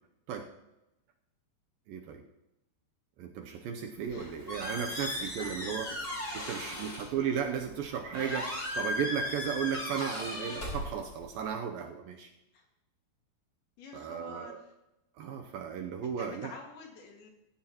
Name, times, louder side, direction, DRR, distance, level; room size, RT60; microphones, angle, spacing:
voice 1, 1.9-2.2 3.2-5.9 6.3-12.3 13.9-14.6 15.2-16.5, right 8 dB, 80° right, 4 dB, 2.1 m, -35 dB
Squeak, 4.0-11.5, left 1 dB, 20° left, 6.1 m, -37 dB
voice 2, 4.1-4.4 4.8-7.0 12.5-12.7 13.8-14.6 16.0-17.3, left 4 dB, 65° left, 1 dB, 3.7 m, -49 dB
16.5 x 15.5 x 3.0 m, 0.93 s
omnidirectional pair, 5.0 m